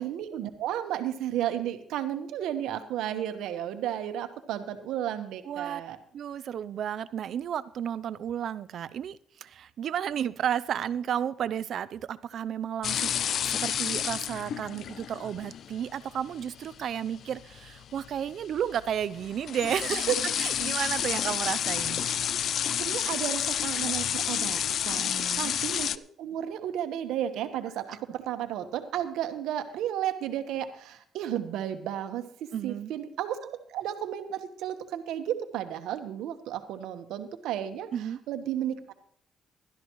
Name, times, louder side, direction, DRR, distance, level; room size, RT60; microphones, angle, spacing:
voice 1, 0.0-6.0 19.9-20.2 22.8-38.9, right 11 dB, 90° right, 8 dB, 1.2 m, -33 dB
voice 2, 5.4-5.8 6.1-13.1 13.5-22.0 25.0-25.6 32.5-32.9 37.9-38.2, right 9 dB, 65° right, 17 dB, 0.5 m, -32 dB
sound 1, 12.8-26.0, left 9 dB, 65° left, 0.4 m, -30 dB
16.5 x 12.5 x 3.1 m, 0.62 s
cardioid pair, 90°, 0 cm